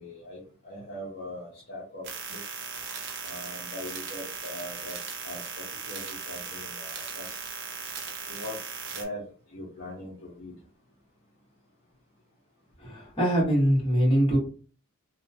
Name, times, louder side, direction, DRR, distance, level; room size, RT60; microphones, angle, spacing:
voice 1, 0.0-2.4 3.2-5.0 5.2-5.4 5.8-7.4 8.3-8.6 8.9-10.5, left 1 dB, 50° left, -4 dB, 0.7 m, -41 dB
sound 1, 2.0-9.0, right 5 dB, 55° right, 0.5 m, -38 dB
voice 2, 12.8-14.4, equal, 25° left, -5 dB, 1.3 m, -23 dB
2.8 x 2.2 x 2.6 m, 0.39 s
head